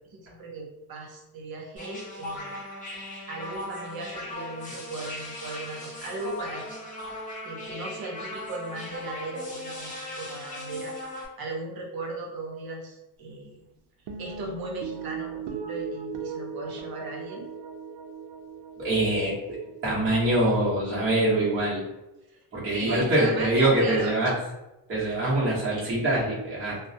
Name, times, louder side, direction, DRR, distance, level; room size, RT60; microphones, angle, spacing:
voice 1, 0.1-2.6 2.9-3.0 3.3-6.7 7.4-13.6 14.2-17.5 22.7-24.1 25.2-25.3, right 2 dB, 60° right, 0 dB, 0.8 m, -37 dB
sound 1, 1.8-11.3, left 1 dB, 20° left, 0.7 m, -38 dB
sound 2, 14.1-20.6, right 5 dB, 85° right, 0.5 m, -38 dB
voice 2, 18.8-21.8 22.5-24.4 24.9-26.8, right 1 dB, 30° right, -7 dB, 0.9 m, -24 dB
2.3 x 2.0 x 2.7 m, 0.97 s
cardioid pair, 110°, 42 cm